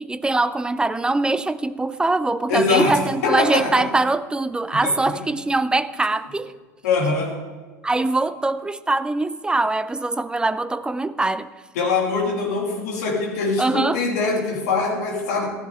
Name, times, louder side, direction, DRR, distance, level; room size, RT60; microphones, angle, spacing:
voice 1, 0.0-6.5 7.8-11.5 13.6-14.0, right 2 dB, 10° right, 0.5 m, -22 dB
voice 2, 2.5-3.8 4.8-4.9 6.8-7.3 11.7-15.5, left 4 dB, 65° left, 3.0 m, -22 dB
15.0 x 13.0 x 3.4 m
figure-of-eight pair, 75°, 9 cm